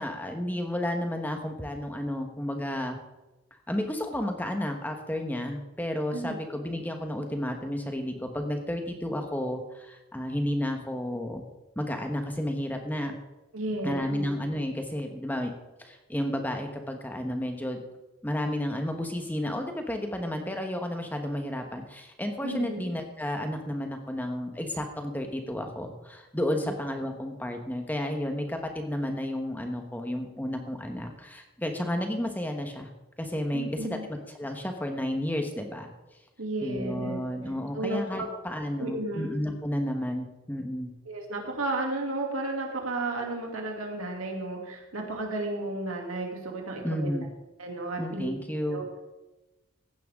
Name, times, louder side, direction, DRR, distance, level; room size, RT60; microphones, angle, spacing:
voice 1, 0.0-3.0 3.7-11.4 11.7-13.1 13.8-15.5 15.8-17.8 18.2-32.9 33.2-35.9 36.6-40.9 46.8-47.2 48.0-48.8, left 1 dB, 10° left, 4 dB, 1.1 m, -32 dB
voice 2, 13.5-14.2 22.4-22.8 26.6-26.7 33.5-34.0 36.4-37.2 37.7-38.3 38.8-39.3 41.1-47.3 47.6-48.3 48.6-48.8, right 2 dB, 85° right, 1 dB, 2.7 m, -33 dB
15.5 x 10.5 x 3.6 m, 1.0 s
head